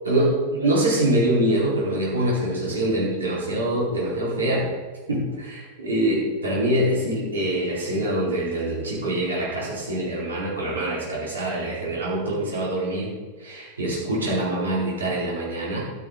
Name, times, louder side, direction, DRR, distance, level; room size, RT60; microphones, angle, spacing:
voice 1, 0.0-4.7 5.1-13.1 13.4-15.8, right 1 dB, 70° right, -6 dB, 4.4 m, -24 dB
12.5 x 12.0 x 4.1 m, 1.3 s
figure-of-eight pair, 90°, 0 cm